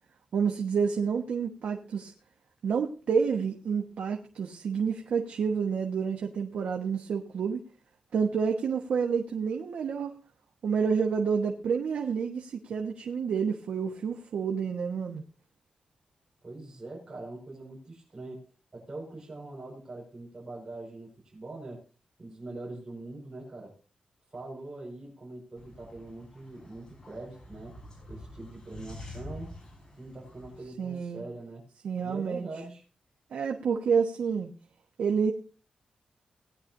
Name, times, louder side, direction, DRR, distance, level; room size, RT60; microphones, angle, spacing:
voice 1, 0.3-2.1 2.6-7.6 8.1-10.2 10.6-15.2 30.8-31.2 31.8-32.5 33.3-34.5 35.0-35.3, right 6 dB, 85° right, 3 dB, 1.1 m, -29 dB
voice 2, 16.4-21.8 22.2-23.7 24.3-27.7 28.1-29.6 30.0-31.7 32.0-32.8, right 2 dB, 25° right, -4 dB, 5.1 m, -43 dB
sound 1, 25.6-30.7, left 1 dB, 35° left, 5.4 m, -47 dB
18.5 x 10.0 x 2.6 m, 0.35 s
wide cardioid pair, 150°, 2 cm